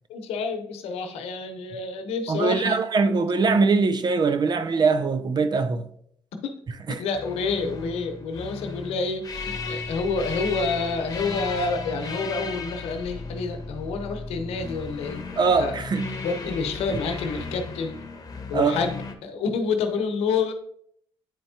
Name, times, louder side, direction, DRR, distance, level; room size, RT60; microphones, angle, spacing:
voice 1, 0.1-2.7 6.4-6.5 6.9-15.2 15.6-15.8 16.2-17.9 18.5-20.5, left 4 dB, 85° left, 0.8 m, -28 dB
voice 2, 2.3-5.8 15.4-16.1 18.5-18.8, right 4 dB, 45° right, 0.6 m, -22 dB
sound 1, 7.1-19.1, left 3 dB, 35° left, 1.1 m, -35 dB
9.2 x 4.4 x 2.8 m
supercardioid pair, 70°, 10 cm